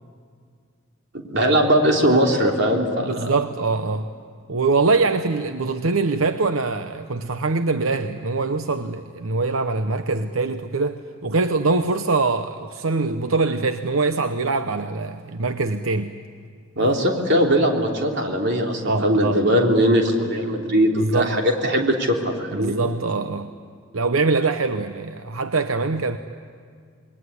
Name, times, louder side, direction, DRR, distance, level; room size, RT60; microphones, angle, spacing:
voice 1, 1.3-3.3 16.8-22.8, equal, 55° right, 3.5 m, -20 dB
voice 2, 3.0-4.1 4.5-16.1 16.8-17.0 18.9-19.5 20.9-21.3 22.5-23.5 23.9-26.2, right 3 dB, 90° right, 0.9 m, -23 dB
27.0 x 21.5 x 9.7 m
head